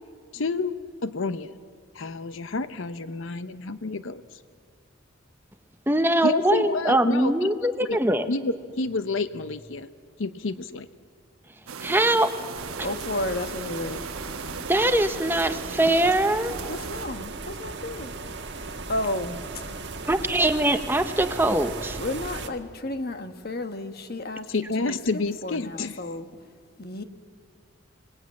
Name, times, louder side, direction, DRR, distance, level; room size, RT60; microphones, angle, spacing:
voice 1, 0.3-0.7 1.0-1.5 1.9-4.4 6.2-7.5 7.8-8.0 8.3-9.9 10.2-10.9 24.5-26.0, left 3 dB, 65° left, 12 dB, 0.7 m, -29 dB
voice 2, 5.9-8.3 11.8-12.3 14.7-16.6 20.1-22.0, right 1 dB, 10° right, 9 dB, 0.8 m, -22 dB
sound 1, 11.7-17.1, right 5 dB, 85° right, 1.1 m, -38 dB
sound 2, 12.5-22.5, right 3 dB, 55° right, 1.4 m, -37 dB
voice 3, 12.8-14.0 16.7-18.1 18.9-19.7 22.0-24.5 24.9-25.0 25.4-26.3 26.8-27.0, left 1 dB, 45° left, 8 dB, 1.3 m, -32 dB
26.5 x 18.5 x 8.6 m, 2.1 s
head